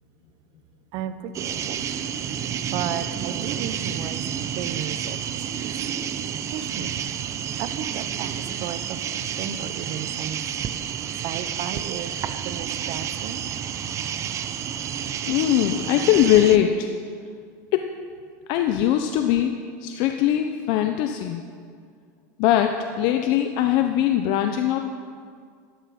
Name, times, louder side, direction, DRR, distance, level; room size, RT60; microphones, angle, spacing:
voice 1, 0.9-2.0 2.7-5.8 6.5-7.0 7.6-10.4 11.2-13.4, right 9 dB, 50° right, 11 dB, 1.1 m, -34 dB
sound 1, 1.3-16.6, right 9 dB, 30° right, 0.8 m, -30 dB
voice 2, 15.3-16.9 17.7-17.9 18.5-19.5 19.8-21.4 22.4-24.8, left 11 dB, 55° left, 6 dB, 0.9 m, -21 dB
14.5 x 13.5 x 6.1 m, 2.1 s
supercardioid pair, 135°, 10 cm